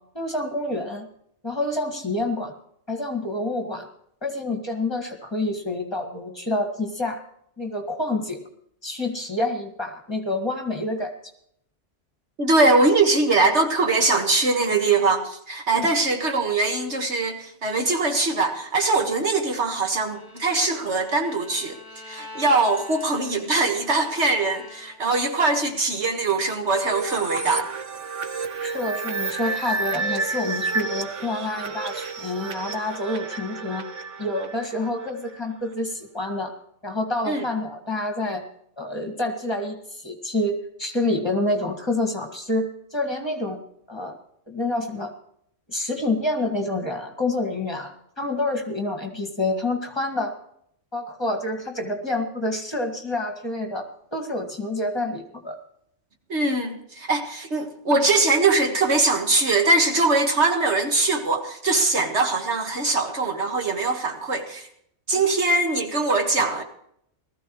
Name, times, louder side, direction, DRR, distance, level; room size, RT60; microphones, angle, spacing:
voice 1, 0.1-1.1 1.4-2.5 2.9-3.9 4.2-7.2 7.6-8.4 8.8-11.1 15.7-15.9 28.6-33.9 34.2-36.5 36.8-38.4 38.8-43.6 43.9-44.2 44.5-45.1 45.7-50.4 50.9-55.6, left 2 dB, 20° left, 3 dB, 2.1 m, -28 dB
voice 2, 12.4-21.8 22.1-27.7 37.3-37.4 56.3-64.7 65.1-66.6, right 3 dB, 65° right, 4 dB, 2.0 m, -22 dB
Bowed string instrument, 20.0-25.2, left 2 dB, ahead, 5.5 m, -44 dB
sound 1, 26.8-35.4, right 4 dB, 90° right, 1.4 m, -30 dB
19.5 x 14.0 x 3.1 m, 0.69 s
omnidirectional pair, 1.2 m